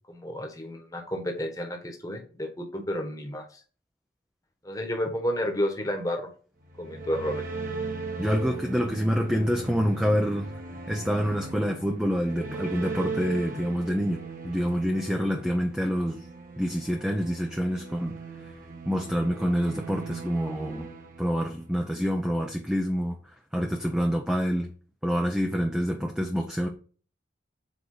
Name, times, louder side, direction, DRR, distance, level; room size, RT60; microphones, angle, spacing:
voice 1, 0.1-3.4 4.6-6.3 6.8-7.5, equal, 20° left, 1.5 m, -31 dB
sound 1, 6.6-21.8, right 3 dB, 45° right, 1.5 m, -38 dB
voice 2, 8.2-16.3 16.6-18.5 18.9-20.9 21.2-24.7 25.0-26.7, equal, 5° right, 0.8 m, -27 dB
8.0 x 4.8 x 5.0 m
head